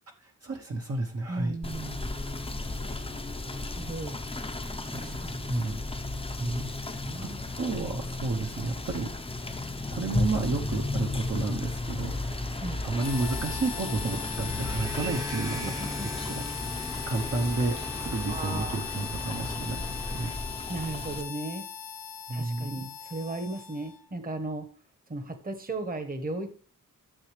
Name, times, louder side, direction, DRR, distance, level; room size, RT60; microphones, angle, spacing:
voice 1, 0.2-1.5 4.9-5.8 6.4-7.3 7.6-9.1 9.9-12.2 12.8-15.7 16.2-16.4 17.1-20.3 22.3-22.7, right 3 dB, 45° right, 0 dB, 1.0 m, -31 dB
voice 2, 1.3-2.1 3.4-4.2 5.0-5.5 7.0-7.4 12.6-12.8 15.6-16.1 18.3-18.8 20.7-21.7 22.3-24.7 25.1-26.5, right 2 dB, 25° right, 7 dB, 1.3 m, -36 dB
Rain / Motor vehicle (road), 1.6-21.2, left 2 dB, 15° left, 0.8 m, -34 dB
sound 1, 2.0-20.3, equal, 10° right, 0.9 m, -44 dB
Harmonica, 13.0-24.1, left 7 dB, 80° left, 1.0 m, -39 dB
12.5 x 7.0 x 3.3 m, 0.42 s
wide cardioid pair, 145°, 34 cm